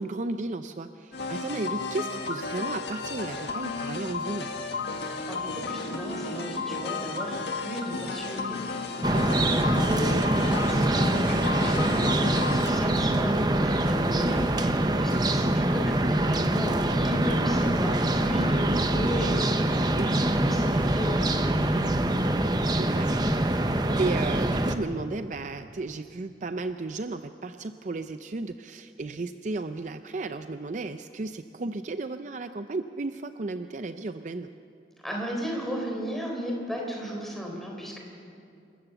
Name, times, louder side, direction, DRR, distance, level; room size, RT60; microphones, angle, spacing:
voice 1, 0.0-4.5 9.5-9.8 15.4-15.7 20.0-20.1 22.7-23.3 24.0-34.5, right 3 dB, 40° right, 9 dB, 0.5 m, -34 dB
sound 1, 1.1-12.8, left 4 dB, 70° left, 1.7 m, -33 dB
voice 2, 5.3-21.6 35.0-38.0, equal, ahead, -1 dB, 3.8 m, -35 dB
sound 2, 9.0-24.8, right 1 dB, 25° right, 0.8 m, -24 dB
27.5 x 14.5 x 7.0 m, 2.6 s
head